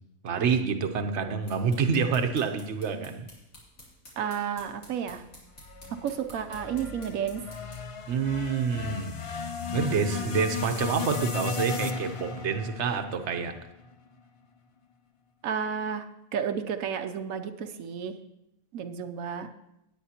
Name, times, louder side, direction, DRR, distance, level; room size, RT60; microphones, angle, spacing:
voice 1, 0.2-3.2 8.1-13.5, right 6 dB, 60° right, 6 dB, 1.1 m, -28 dB
sound 1, 1.2-8.0, left 1 dB, 85° left, 3.4 m, -52 dB
voice 2, 4.2-5.2 5.9-7.5 9.7-10.4 15.4-18.2 18.7-19.5, right 7 dB, 85° right, 8 dB, 1.1 m, -32 dB
sound 2, 5.6-13.9, left 5 dB, 60° left, 0.3 m, -35 dB
17.5 x 9.0 x 2.9 m, 0.85 s
omnidirectional pair, 1.4 m